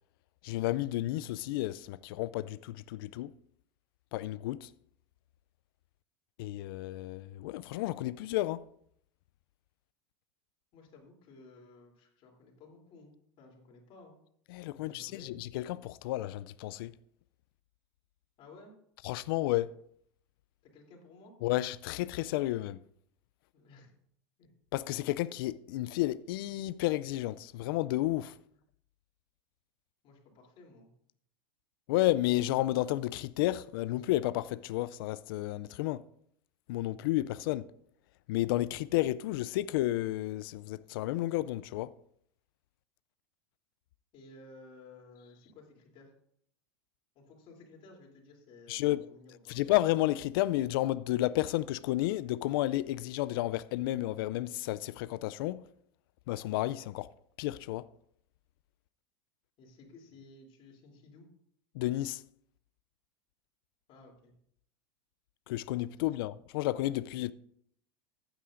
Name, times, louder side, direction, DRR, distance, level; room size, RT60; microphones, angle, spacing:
voice 1, 0.4-3.3 4.1-4.7 6.4-8.6 14.5-16.9 19.0-19.7 21.4-22.8 24.7-28.3 31.9-36.0 36.7-37.7 38.3-41.9 48.7-49.1 49.5-55.6 56.3-57.1 57.4-57.9 61.7-62.2 65.5-67.3, left 16 dB, 65° left, 0.4 m, -31 dB
voice 2, 10.7-14.2 14.7-15.3 18.4-18.7 20.6-21.3 23.5-23.9 24.4-24.5 30.0-30.9 44.1-46.1 47.1-49.6 59.6-61.3 63.9-64.3, left 3 dB, 45° left, 3.1 m, -55 dB
14.5 x 8.9 x 2.5 m
hypercardioid pair, 110°, 13 cm